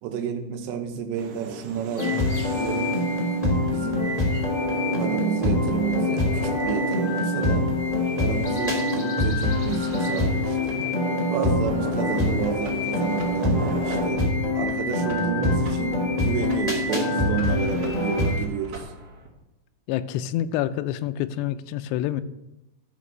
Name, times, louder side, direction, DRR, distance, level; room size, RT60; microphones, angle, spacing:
voice 1, 0.0-3.0 3.7-4.1 5.0-7.7 8.2-10.8 11.3-14.3 14.5-18.9, right 7 dB, 80° right, 5 dB, 3.3 m, -31 dB
sound 1, 1.1-14.1, right 4 dB, 65° right, 2.3 m, -38 dB
sound 2, 2.0-18.4, left 1 dB, 10° left, 2.1 m, -24 dB
sound 3, 11.7-19.3, right 3 dB, 45° right, 3.9 m, -42 dB
voice 2, 19.9-22.2, left 12 dB, 85° left, 10 dB, 2.7 m, -27 dB
13.0 x 6.6 x 6.2 m, 0.92 s
omnidirectional pair, 5.0 m